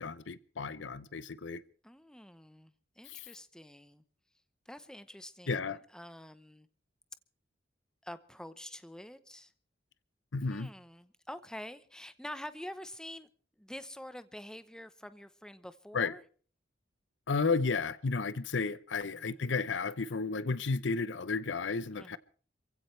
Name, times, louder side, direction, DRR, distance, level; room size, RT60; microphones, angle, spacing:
voice 1, 0.0-1.6 3.1-3.3 5.5-5.8 10.3-10.7 15.9-16.1 17.3-22.2, left 4 dB, 70° left, 0.8 m, -33 dB
voice 2, 1.8-4.0 4.7-6.7 8.0-9.5 10.5-13.3 13.6-16.2 19.0-19.5 21.9-22.2, left 1 dB, 5° left, 0.9 m, -47 dB
28.0 x 16.0 x 3.3 m
head